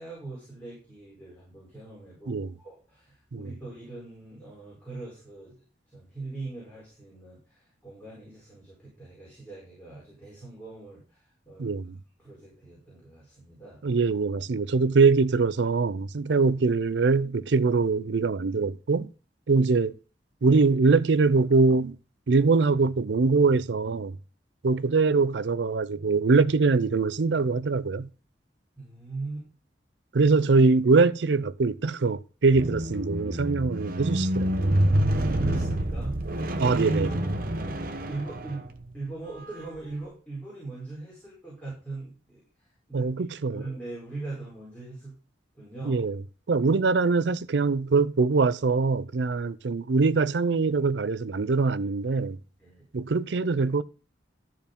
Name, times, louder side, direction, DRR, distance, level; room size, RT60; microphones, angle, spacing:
voice 1, 0.0-5.6 5.9-11.7 12.2-13.8 28.8-29.5 35.2-36.2 36.9-38.7 38.9-42.4 42.9-45.1 45.5-46.0 52.6-52.9, right 3 dB, 10° left, 4.6 m, -41 dB
voice 2, 11.6-11.9 13.8-19.1 19.5-20.0 20.4-22.0 22.3-24.2 24.6-28.1 30.1-34.8 36.6-37.2 42.9-43.7 45.8-46.2 46.5-52.4 52.9-53.8, right 4 dB, 75° right, 0.5 m, -23 dB
Squeak, 32.5-38.9 39.7-39.8, right 1 dB, 55° right, 1.0 m, -27 dB
13.0 x 4.6 x 5.2 m
head